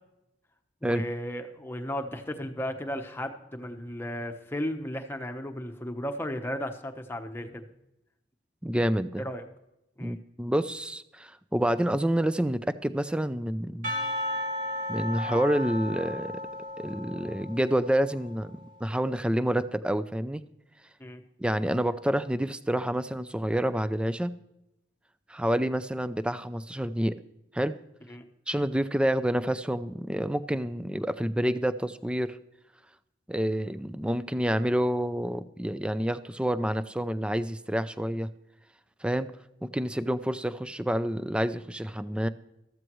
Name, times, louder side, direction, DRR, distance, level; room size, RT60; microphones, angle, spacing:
voice 1, 0.8-7.7 9.2-9.4 10.0-10.2 21.0-21.2 28.1-28.3, equal, 15° left, 5 dB, 1.0 m, -35 dB
voice 2, 8.6-9.2 10.0-14.0 14.9-16.4 16.8-20.4 21.4-24.3 25.3-27.2 27.5-27.8 28.5-32.4 33.3-38.3 39.0-39.3 39.6-42.3, right 1 dB, 5° right, 14 dB, 0.4 m, -28 dB
Percussion / Church bell, 13.8-18.4, left 1 dB, 50° right, 2.2 m, -34 dB
14.0 x 13.5 x 3.1 m, 0.88 s
head